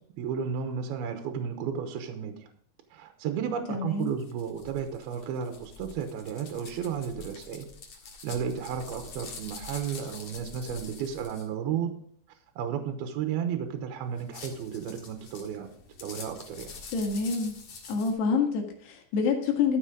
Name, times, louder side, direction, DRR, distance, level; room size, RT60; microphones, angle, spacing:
voice 1, 0.2-2.4 2.9-7.7 8.2-12.0 12.6-15.7 16.0-16.7, right 7 dB, 75° right, 6 dB, 2.7 m, -33 dB
voice 2, 3.7-4.1 16.9-17.6 17.9-19.8, left 5 dB, 75° left, 1 dB, 3.9 m, -27 dB
sound 1, 4.0-11.5 14.1-18.1, left 4 dB, 50° left, 2.5 m, -46 dB
13.5 x 6.1 x 5.0 m, 0.63 s
omnidirectional pair, 4.9 m